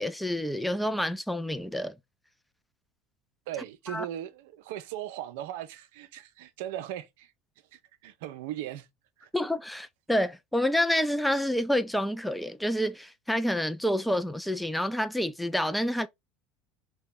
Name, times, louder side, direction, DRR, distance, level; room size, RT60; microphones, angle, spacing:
voice 1, 0.0-1.9 3.9-4.0 9.3-16.1, left 1 dB, 5° left, 0.5 m, -28 dB
voice 2, 3.5-7.3 7.7-8.9 9.2-9.3, right 12 dB, 70° right, 0.5 m, -38 dB
2.8 x 2.2 x 3.5 m
hypercardioid pair, 75°, 0 cm